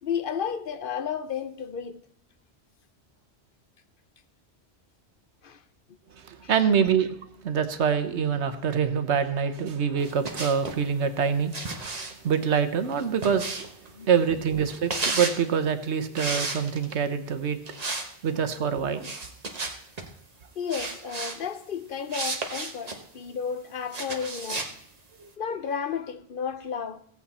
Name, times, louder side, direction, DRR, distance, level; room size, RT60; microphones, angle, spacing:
voice 1, 0.0-2.0 5.4-5.6 6.4-6.5 14.0-14.1 20.6-24.7 25.4-27.0, left 7 dB, 60° left, 0.8 m, -32 dB
voice 2, 6.2-7.2 7.4-13.6 14.0-17.6 18.2-19.1 25.2-25.3, right 7 dB, 85° right, 1.2 m, -25 dB
sound 1, 10.0-10.8 11.5-13.9 14.7-15.4 16.1-17.0 17.7-18.1 18.4-18.5 19.0-20.1 20.7-21.4 22.1-23.0 23.9-24.7, right 3 dB, 35° right, 1.2 m, -32 dB
16.0 x 8.4 x 4.2 m
omnidirectional pair, 1.1 m